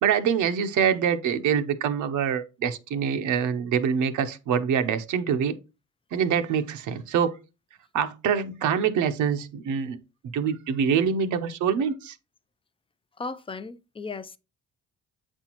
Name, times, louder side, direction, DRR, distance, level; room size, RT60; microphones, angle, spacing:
voice 1, 0.0-5.5 6.1-7.4 7.9-10.0 10.3-12.1, right 7 dB, 75° right, 0.8 m, -25 dB
voice 2, 13.2-14.4, left 4 dB, 20° left, 0.4 m, -36 dB
7.9 x 4.4 x 2.9 m
cardioid pair, 90°, 30 cm